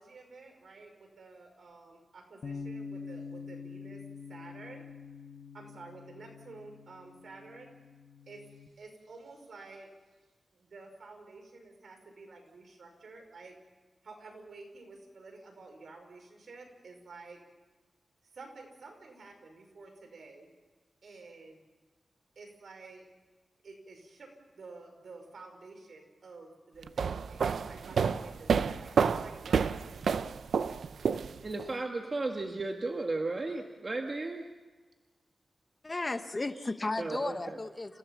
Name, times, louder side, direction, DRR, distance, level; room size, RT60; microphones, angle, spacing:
voice 1, 0.0-4.0 4.3-4.8 5.5-7.7 8.3-8.4 8.8-9.9 10.5-13.5 14.0-17.4 18.3-20.5 21.0-21.6 22.4-23.1 23.6-24.3 24.6-30.4, right 3 dB, 70° right, 3 dB, 5.6 m, -51 dB
Bass guitar, 2.4-8.7, left 5 dB, 60° left, 1.2 m, -45 dB
sound 1, 26.8-31.7, right 6 dB, 85° right, 0.6 m, -29 dB
voice 2, 31.4-34.5 37.0-37.6, right 2 dB, 40° right, 3 dB, 1.8 m, -34 dB
voice 3, 35.8-38.0, left 2 dB, 30° left, 9 dB, 1.2 m, -34 dB
29.5 x 16.5 x 7.3 m, 1.3 s
wide cardioid pair, 100°, 0 cm